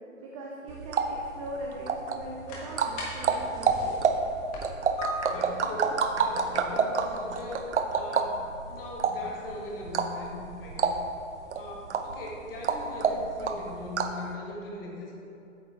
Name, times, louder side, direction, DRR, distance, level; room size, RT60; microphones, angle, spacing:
voice 1, 0.2-4.0, right 1 dB, 25° right, -2 dB, 0.7 m, -40 dB
sound 1, 0.7-14.3, right 5 dB, 60° right, 0.7 m, -29 dB
sound 2, 2.2-13.6, equal, 20° left, 1.4 m, -45 dB
voice 2, 4.9-8.4 8.7-10.9 11.6-15.1, left 2 dB, 45° left, -2 dB, 1.7 m, -40 dB
8.6 x 7.0 x 4.5 m, 2.7 s
figure-of-eight pair, 125°, 40 cm